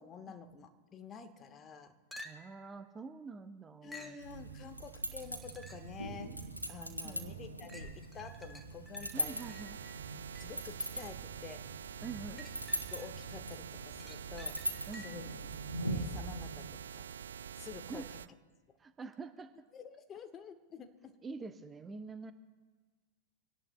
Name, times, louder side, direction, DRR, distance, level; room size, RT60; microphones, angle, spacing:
voice 1, 0.0-1.9 3.8-6.3 6.7-9.5 10.4-11.7 12.3-12.4 12.9-14.6 15.0-15.3 15.8-16.7 16.9-17.1 17.6-18.2 19.7-21.2, left 6 dB, 25° left, 7 dB, 1.3 m, -49 dB
sound 1, 2.1-2.7 3.9-4.2 5.2-6.0 6.5-6.6 7.7-10.7 12.0-13.3 13.7-15.4 19.1-19.2, left 1 dB, ahead, 1.6 m, -53 dB
voice 2, 2.2-4.2 7.0-7.4 9.1-9.8 12.0-12.4 14.9-15.2 17.9-18.1 18.8-19.7 21.2-22.3, right 4 dB, 15° right, 10 dB, 0.6 m, -46 dB
sound 2, 4.2-16.7, right 1 dB, 85° right, 1.6 m, -41 dB
sound 3, 9.1-18.3, right 8 dB, 65° right, 0.4 m, -47 dB
25.5 x 18.0 x 2.2 m, 1.4 s
figure-of-eight pair, 90°, 0 cm